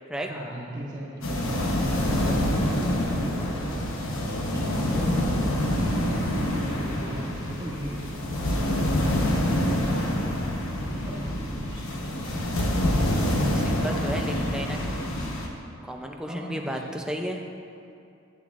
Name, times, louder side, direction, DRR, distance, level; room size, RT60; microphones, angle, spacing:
voice 1, 0.2-8.4 8.8-10.2 11.0-12.1 13.4-14.6 16.2-17.0, right 1 dB, 20° right, -9 dB, 1.9 m, -38 dB
sound 1, 1.2-15.5, left 1 dB, 90° left, 1.0 m, -26 dB
voice 2, 13.4-14.9 15.8-17.4, equal, 5° right, 2 dB, 0.4 m, -33 dB
10.5 x 9.4 x 2.5 m, 2.6 s
head